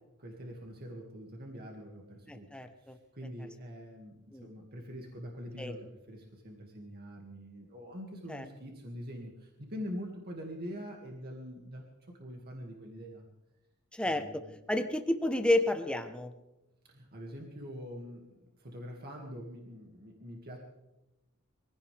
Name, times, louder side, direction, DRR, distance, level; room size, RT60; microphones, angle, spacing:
voice 1, 0.2-2.5 2.8-13.2 14.0-14.5 16.9-20.6, equal, 45° right, 0 dB, 2.4 m, -44 dB
voice 2, 2.3-3.0 4.3-4.5 5.6-5.7 8.3-8.4 13.9-14.2 14.7-16.3, left 1 dB, 5° left, 7 dB, 1.1 m, -30 dB
23.5 x 16.5 x 3.6 m, 0.96 s
head